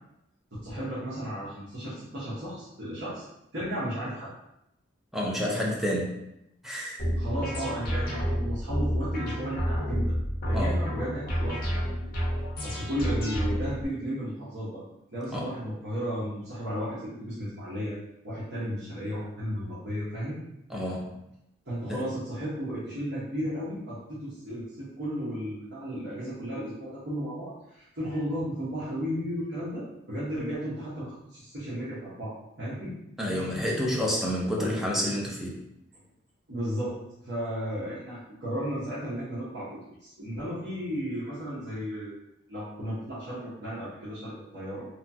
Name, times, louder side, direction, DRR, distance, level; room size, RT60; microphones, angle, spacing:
voice 1, 0.5-3.3 3.5-4.3 7.1-10.1 10.4-11.9 12.6-14.8 15.1-18.0 18.2-20.4 21.7-33.0 33.3-33.5 34.6-34.8 35.9-36.0 36.5-37.0 37.2-42.1 42.5-44.9, equal, 55° right, -10 dB, 0.9 m, -34 dB
voice 2, 5.1-6.2 6.6-7.1 10.5-10.8 15.3-15.5 20.7-21.1 21.9-22.0 33.2-35.6, equal, ahead, -4 dB, 0.4 m, -29 dB
sound 1, 7.0-13.8, equal, 45° left, 0.9 m, -29 dB
2.9 x 2.3 x 2.6 m, 0.84 s
head